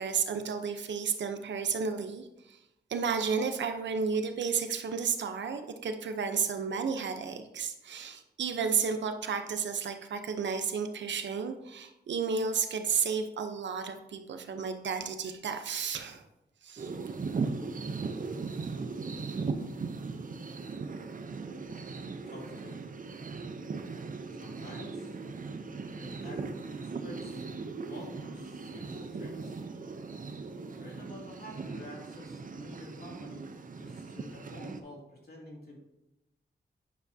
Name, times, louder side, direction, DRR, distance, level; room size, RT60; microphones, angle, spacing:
voice 1, 0.0-2.6 2.9-16.2 16.6-16.9, right 6 dB, 90° right, 7 dB, 0.7 m, -32 dB
sound 1, 16.8-34.8, right 4 dB, 50° right, 0.7 m, -38 dB
voice 2, 22.2-22.8 24.2-25.2 25.9-27.5 27.9-29.6 30.7-33.5 33.8-35.8, left 1 dB, 60° left, -2 dB, 2.7 m, -48 dB
9.6 x 6.0 x 2.7 m, 0.90 s
cardioid pair, 60°, 18 cm